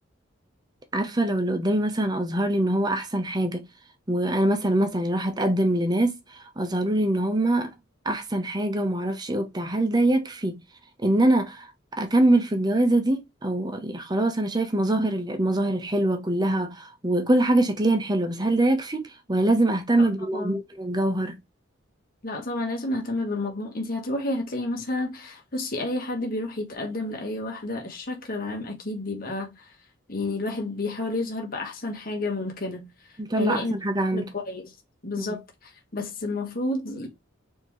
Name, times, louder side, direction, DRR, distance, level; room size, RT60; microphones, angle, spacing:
voice 1, 0.9-3.7 4.1-7.7 8.0-10.6 11.0-11.7 12.0-21.4 33.3-34.3 35.2-35.3, right 1 dB, 20° right, 0.9 m, -24 dB
voice 2, 20.0-20.6 22.2-29.7 30.1-32.9 33.3-33.8 34.1-34.7 35.0-37.1, left 2 dB, 45° left, 1.4 m, -30 dB
4.3 x 3.7 x 3.2 m
head